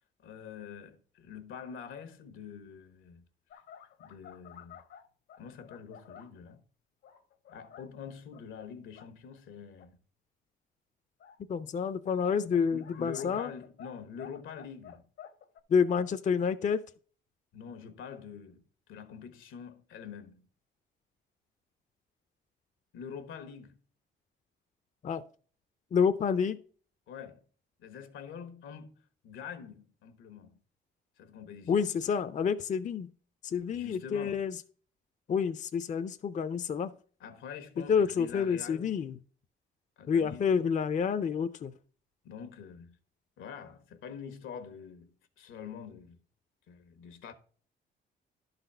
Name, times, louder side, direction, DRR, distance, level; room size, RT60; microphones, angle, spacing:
voice 1, 0.2-3.2 4.0-4.8 5.4-6.6 7.5-10.0 12.7-15.1 17.5-18.6 18.9-20.5 22.9-23.8 27.1-27.4 27.8-28.9 29.2-30.6 31.2-31.9 33.7-34.4 37.2-39.0 40.0-40.5 42.2-43.0 43.4-46.2 46.7-47.3, left 7 dB, 85° left, 1.2 m, -45 dB
sound 1, 3.5-6.4 7.0-7.9 8.3-8.4 8.8-9.1 9.8-9.9 11.2-11.4 12.2-13.9 14.2-15.6, left 9 dB, 70° left, 1.0 m, -51 dB
voice 2, 11.5-13.5 15.7-16.8 25.0-25.2 25.9-26.6 31.7-33.1 33.4-34.6 35.3-36.9 37.9-39.1 40.1-41.7, left 6 dB, 40° left, 0.5 m, -28 dB
11.0 x 4.1 x 5.5 m
cardioid pair, 90°, 20 cm